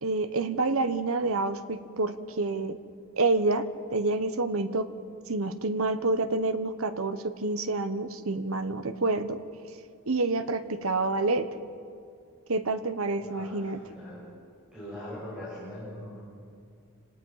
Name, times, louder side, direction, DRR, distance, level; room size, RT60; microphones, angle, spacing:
voice 1, 0.0-2.8 3.2-3.6 3.9-4.9 5.3-9.4 10.1-11.5 12.5-13.8, right 3 dB, 65° right, 10 dB, 1.1 m, -28 dB
voice 2, 13.1-14.2 14.7-16.2, left 1 dB, 5° right, -9 dB, 6.9 m, -41 dB
28.5 x 18.0 x 5.7 m, 2.4 s
head